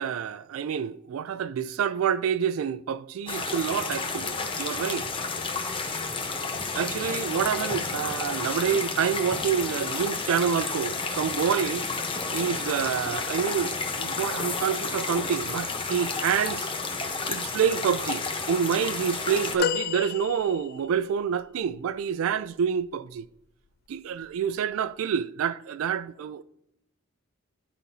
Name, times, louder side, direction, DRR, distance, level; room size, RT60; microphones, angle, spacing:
voice 1, 0.0-5.1 6.7-11.9 12.3-16.7 17.3-23.2 23.9-26.4, right 7 dB, 85° right, 0.3 m, -28 dB
sound 1, 3.3-19.6, left 4 dB, 25° left, 0.8 m, -31 dB
sound 2, 19.6-21.0 21.7-21.8, left 9 dB, 50° left, 0.3 m, -30 dB
10.5 x 5.8 x 2.7 m
head